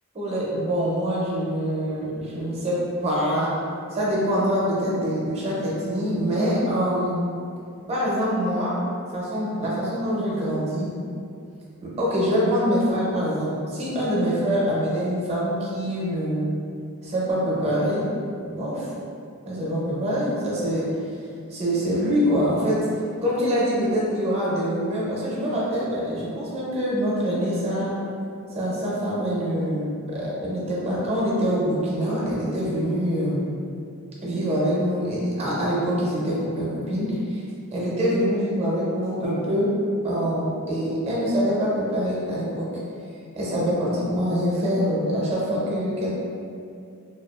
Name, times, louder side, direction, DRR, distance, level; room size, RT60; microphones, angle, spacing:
voice 1, 0.1-3.5 3.9-7.2 7.9-8.7 9.1-10.9 11.8-16.5 17.0-18.1 18.4-18.9 19.5-20.9 21.5-22.8 23.2-27.9 28.5-33.4 34.2-37.4 37.7-39.7 40.0-42.7 43.4-46.1, equal, 30° right, -6 dB, 0.5 m, -25 dB
2.3 x 2.3 x 2.3 m, 2.4 s
head